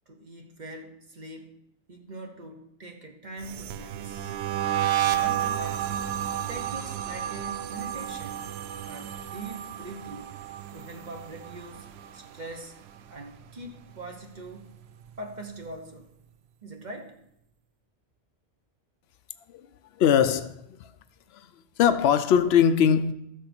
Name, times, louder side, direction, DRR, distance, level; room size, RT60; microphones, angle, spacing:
voice 1, 0.1-1.5 1.9-4.3 4.9-6.0 6.5-8.5 8.8-10.3 10.7-12.8 13.1-14.7 15.2-16.1 16.6-17.2, right 2 dB, 45° right, 1.3 m, -42 dB
sound 1, 3.4-12.6 12.9-13.3 13.6-15.2, right 11 dB, 85° right, 0.8 m, -32 dB
voice 2, 20.0-20.9 21.3-21.5 21.8-23.1, left 8 dB, 85° left, 0.8 m, -21 dB
12.5 x 6.8 x 4.3 m
omnidirectional pair, 1.1 m